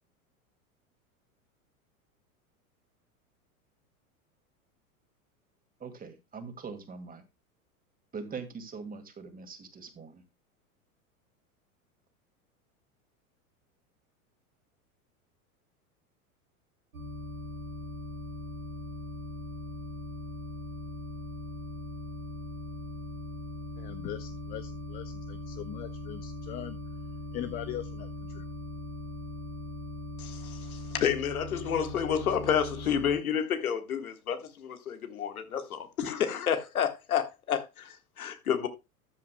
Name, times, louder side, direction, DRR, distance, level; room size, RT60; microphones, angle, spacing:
voice 1, 5.8-7.2 8.1-10.2, right 5 dB, 20° right, 2.2 m, -42 dB
sound 1, 16.9-33.2, left 1 dB, 80° right, 2.3 m, -40 dB
voice 2, 23.8-26.8 27.3-28.1 28.3-28.4, left 13 dB, 20° left, 0.4 m, -40 dB
voice 3, 30.2-38.7, left 8 dB, 75° left, 1.6 m, -30 dB
13.5 x 8.3 x 2.2 m
figure-of-eight pair, 90°, 43 cm